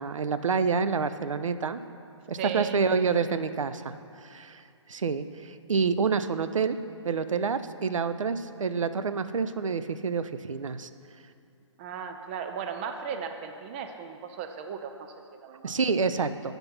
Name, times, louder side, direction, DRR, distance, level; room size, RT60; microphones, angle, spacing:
voice 1, 0.0-1.8 2.3-3.9 4.2-4.6 4.9-6.8 7.0-10.9 15.6-16.5, right 5 dB, 80° right, 12 dB, 0.5 m, -28 dB
voice 2, 2.4-2.8 11.8-15.7, right 7 dB, 20° right, 6 dB, 0.4 m, -36 dB
8.0 x 5.2 x 5.9 m, 2.4 s
figure-of-eight pair, 140°, 16 cm